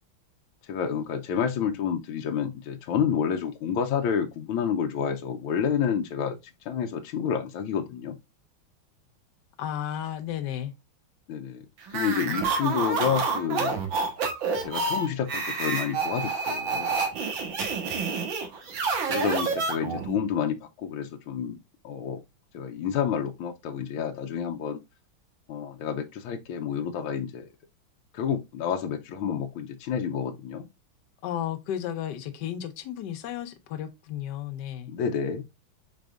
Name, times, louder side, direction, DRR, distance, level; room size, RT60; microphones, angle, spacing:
voice 1, 0.7-6.4 6.6-8.2 11.3-11.6 11.9-13.7 14.6-17.0 19.1-21.6 21.8-22.2 22.5-24.8 25.5-27.5 28.1-30.7 34.9-35.4, left 7 dB, 85° left, 1.5 m, -29 dB
voice 2, 9.6-10.7 31.2-34.9, left 10 dB, 65° left, 1.3 m, -33 dB
sound 1, 11.9-20.2, right 4 dB, 70° right, 1.9 m, -28 dB
5.3 x 4.2 x 2.4 m
omnidirectional pair, 2.3 m